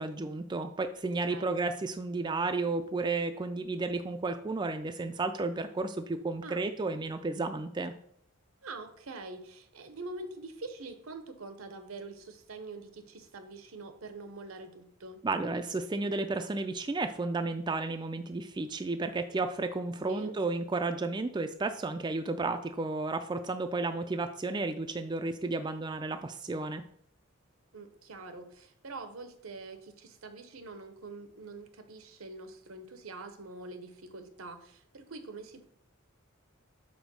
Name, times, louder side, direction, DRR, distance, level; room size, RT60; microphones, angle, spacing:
voice 1, 0.0-7.9 15.2-26.8, right 3 dB, 20° right, 7 dB, 0.3 m, -32 dB
voice 2, 8.6-15.2 20.1-20.3 27.7-35.7, right 3 dB, 80° right, 8 dB, 0.9 m, -45 dB
5.2 x 4.5 x 6.1 m, 0.65 s
head